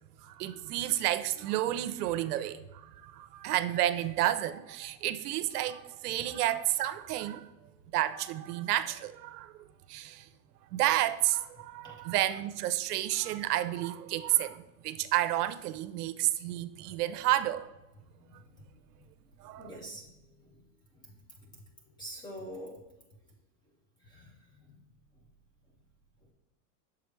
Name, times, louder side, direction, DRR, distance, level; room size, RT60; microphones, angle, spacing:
voice 1, 0.2-7.5 7.9-10.3 10.7-17.7 19.4-19.7, right 14 dB, 80° right, 0.6 m, -31 dB
voice 2, 19.6-20.1 20.5-20.6 22.0-22.8 24.1-24.3 24.6-24.8, equal, 10° left, 0.3 m, -44 dB
6.9 x 4.8 x 3.2 m
supercardioid pair, 140°, 46 cm